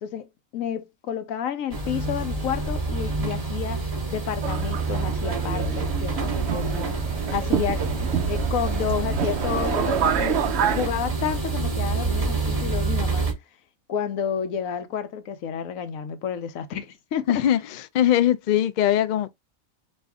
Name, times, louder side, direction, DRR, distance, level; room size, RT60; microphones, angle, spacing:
voice 1, 0.0-3.8 4.1-7.0 7.3-7.9 8.3-10.4 10.7-13.3 13.9-17.4, left 8 dB, 85° left, 1.1 m, -30 dB
sound 1, 1.7-13.3, right 3 dB, 25° right, 1.4 m, -27 dB
Subway metro underground, 4.4-10.9, right 8 dB, 65° right, 0.8 m, -28 dB
voice 2, 17.3-19.3, left 11 dB, 65° left, 0.4 m, -21 dB
5.2 x 2.5 x 3.5 m
omnidirectional pair, 1.4 m